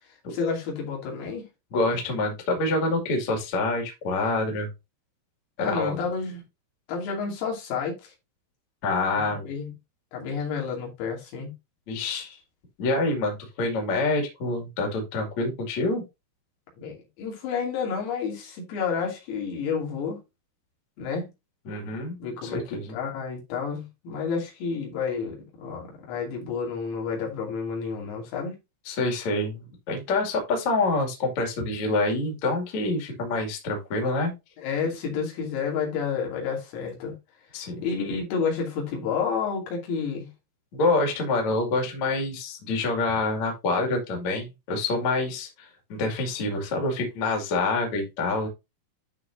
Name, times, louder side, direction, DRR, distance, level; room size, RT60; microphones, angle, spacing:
voice 1, 0.3-1.5 5.6-6.4 6.9-8.1 9.1-9.7 10.1-11.5 16.8-20.2 21.0-21.3 22.2-28.6 34.6-37.2 37.8-40.3, left 5 dB, 80° left, 5.4 m, -30 dB
voice 2, 1.7-4.7 5.6-6.0 8.8-9.5 11.9-12.4 12.8-16.0 21.6-22.1 22.4-23.0 28.9-34.3 37.5-37.9 40.7-48.5, left 2 dB, 45° left, 2.9 m, -26 dB
12.5 x 4.6 x 2.7 m
omnidirectional pair, 6.0 m